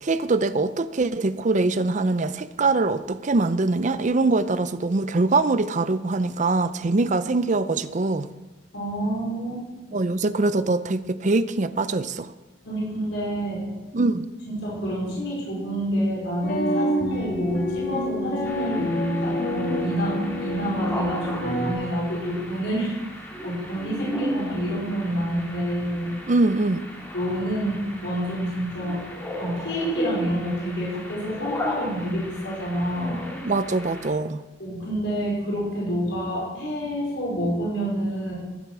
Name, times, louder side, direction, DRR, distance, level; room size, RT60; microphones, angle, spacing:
voice 1, 0.0-8.3 9.9-12.3 13.9-14.3 26.3-26.8 33.4-34.4, right 3 dB, 40° right, 13 dB, 0.6 m, -23 dB
voice 2, 8.7-9.6 9.9-10.0 12.6-13.6 14.4-18.9 19.2-26.1 27.1-29.1 29.4-33.2 34.6-38.3, equal, 90° left, -6 dB, 4.8 m, -28 dB
sound 1, 16.4-21.7, left 1 dB, 60° left, 2.7 m, -27 dB
sound 2, 18.4-34.1, equal, 10° left, 2.5 m, -36 dB
14.5 x 8.2 x 6.2 m, 1.1 s
head